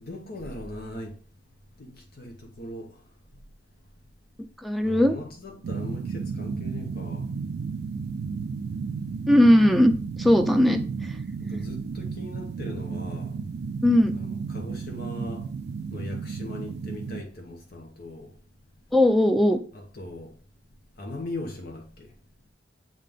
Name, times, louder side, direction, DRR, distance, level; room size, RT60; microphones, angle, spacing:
voice 1, 0.0-1.2 1.8-2.9 4.8-7.3 11.4-13.4 14.1-15.4 15.9-18.3 19.7-20.3 21.0-22.1, left 1 dB, 55° left, 0.9 m, -39 dB
voice 2, 4.6-5.1 9.3-10.8 13.8-14.1 18.9-19.6, left 1 dB, ahead, 0.5 m, -19 dB
sound 1, 5.6-17.2, right 5 dB, 60° right, 0.3 m, -33 dB
7.4 x 3.7 x 3.5 m
head